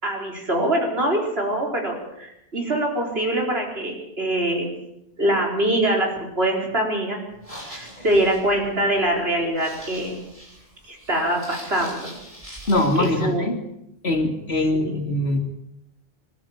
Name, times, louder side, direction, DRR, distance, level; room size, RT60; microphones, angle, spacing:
voice 1, 0.0-4.7 5.2-6.1 6.4-7.2 7.7-10.2 10.8-12.1 13.0-13.5 14.7-15.0, right 1 dB, 70° right, 0 dB, 4.8 m, -23 dB
sound 1, 7.3-13.3, equal, 35° right, 7.2 m, -42 dB
voice 2, 12.7-13.6 14.0-15.4, left 1 dB, 75° left, 4 dB, 3.2 m, -22 dB
25.5 x 12.5 x 8.8 m, 0.83 s
omnidirectional pair, 1.1 m